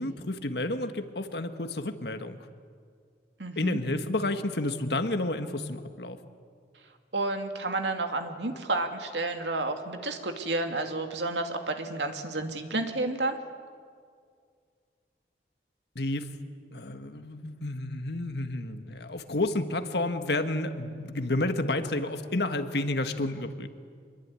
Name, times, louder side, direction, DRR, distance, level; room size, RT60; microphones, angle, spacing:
voice 1, 0.0-2.4 3.6-6.2 15.9-16.3 16.7-23.7, left 2 dB, 70° left, 8 dB, 1.7 m, -30 dB
voice 2, 3.4-3.8 7.1-13.4, right 2 dB, 85° right, 5 dB, 2.4 m, -31 dB
25.5 x 22.0 x 9.7 m, 2.1 s
head